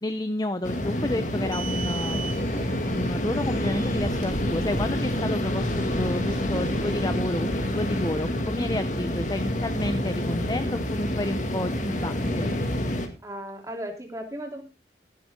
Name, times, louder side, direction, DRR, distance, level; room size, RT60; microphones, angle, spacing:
voice 1, 0.0-2.5 2.8-12.5, left 1 dB, 20° left, 11 dB, 0.6 m, -31 dB
sound 1, 0.6-13.1, left 1 dB, 45° left, 2.1 m, -28 dB
sound 2, 1.2-8.1, right 3 dB, 45° right, 3.4 m, -39 dB
voice 2, 13.2-14.6, equal, 15° right, 2 dB, 3.1 m, -36 dB
14.0 x 11.5 x 3.6 m, 0.30 s
head